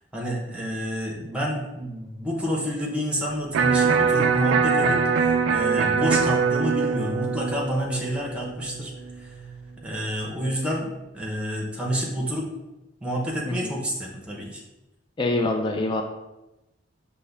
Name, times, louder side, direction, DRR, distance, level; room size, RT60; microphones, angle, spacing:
voice 1, 0.1-8.9 9.2-9.3 9.8-12.5 13.0-14.6, equal, 5° right, -2 dB, 0.7 m, -29 dB
Electric guitar, 3.5-9.6, right 5 dB, 80° right, 0.3 m, -23 dB
voice 2, 15.2-16.0, left 2 dB, 25° left, 3 dB, 0.3 m, -25 dB
5.4 x 2.2 x 3.3 m, 0.96 s
head